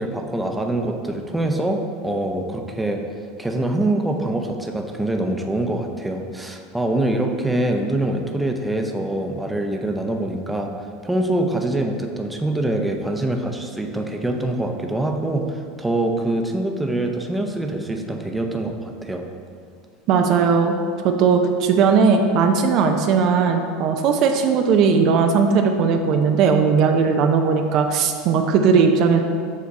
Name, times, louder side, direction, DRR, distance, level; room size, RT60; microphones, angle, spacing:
voice 1, 0.0-3.0 3.4-10.7 11.0-19.2, right 1 dB, 10° right, 3 dB, 0.7 m, -24 dB
voice 2, 20.1-20.7 21.0-29.2, right 5 dB, 55° right, 5 dB, 0.5 m, -18 dB
7.3 x 3.4 x 4.1 m, 2.2 s
hypercardioid pair, 90°, 0 cm